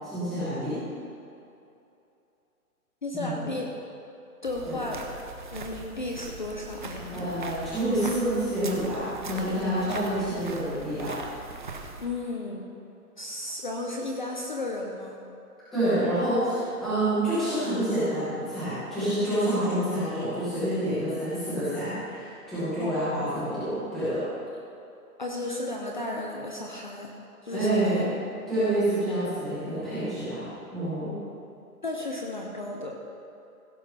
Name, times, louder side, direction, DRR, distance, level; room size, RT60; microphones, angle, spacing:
voice 1, 0.1-0.8 3.1-3.5 4.7-4.8 7.1-11.1 15.7-24.2 27.5-28.1 28.5-31.1, right 1 dB, ahead, -16 dB, 0.9 m, -28 dB
voice 2, 3.0-3.7 4.4-5.0 5.5-7.2 12.0-12.7 13.2-15.2 22.8-23.0 25.2-27.1 27.4-28.0 31.8-33.0, left 2 dB, 30° left, 0 dB, 0.7 m, -34 dB
sound 1, 4.4-12.1, right 3 dB, 35° right, 0.7 m, -41 dB
16.0 x 6.2 x 5.6 m, 2.7 s
hypercardioid pair, 180°, 45 cm